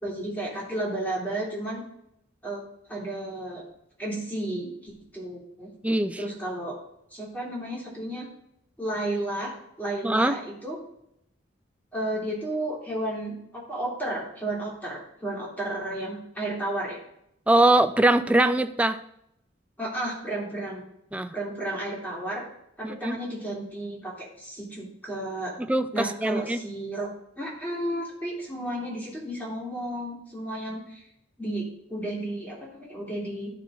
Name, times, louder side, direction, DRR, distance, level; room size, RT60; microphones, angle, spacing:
voice 1, 0.0-1.8 2.4-2.6 2.9-3.6 4.0-5.7 6.2-6.8 7.1-8.3 8.8-9.5 9.8-10.8 11.9-17.0 19.8-20.8 21.3-22.4 22.8-25.5 25.9-27.1 27.4-31.0 31.4-33.5, right 1 dB, 10° left, -5 dB, 2.6 m, -32 dB
voice 2, 5.8-6.2 10.0-10.4 17.5-19.0 21.1-21.3 22.8-23.2 25.7-26.6, right 1 dB, 5° right, 9 dB, 0.3 m, -22 dB
11.5 x 4.8 x 3.8 m, 0.77 s
head